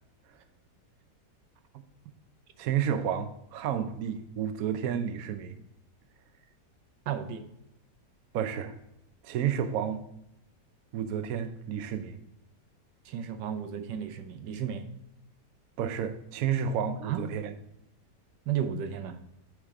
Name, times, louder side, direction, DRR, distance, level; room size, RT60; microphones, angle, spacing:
voice 1, 2.6-5.6 8.3-8.8 9.2-10.0 10.9-12.2 15.8-17.5, right 8 dB, 65° right, 1.0 m, -31 dB
voice 2, 7.1-7.5 13.1-14.9 17.0-17.2 18.5-19.2, right 8 dB, 90° right, 1.3 m, -33 dB
8.1 x 5.0 x 3.6 m
omnidirectional pair, 1.8 m